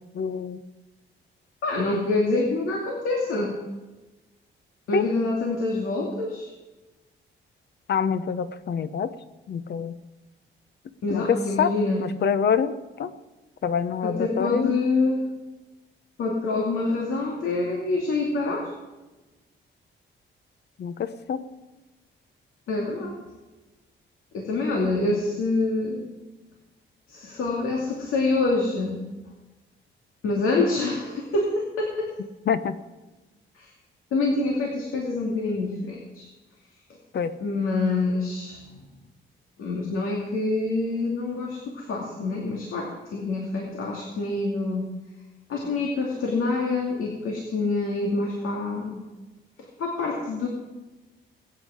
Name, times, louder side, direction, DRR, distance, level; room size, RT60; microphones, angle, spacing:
voice 1, 0.2-0.6 4.9-5.0 7.9-9.1 9.5-9.9 11.1-11.2 11.6-11.7 12.2-12.7 13.0-13.1 13.6-14.7 20.8-20.9 21.3-21.4 32.5-32.7 37.1-37.3, left 7 dB, 55° left, 12 dB, 0.9 m, -25 dB
voice 2, 1.6-3.6 4.9-6.5 11.0-12.1 14.0-15.2 16.2-18.7 22.7-23.2 24.3-26.1 27.1-29.0 30.2-32.1 33.5-33.7 34.1-36.3 37.4-38.6 39.6-44.9 45.5-49.0 49.6-50.5, left 3 dB, 85° left, -1 dB, 2.4 m, -26 dB
21.5 x 9.2 x 5.0 m, 1.1 s
cardioid pair, 140°, 21 cm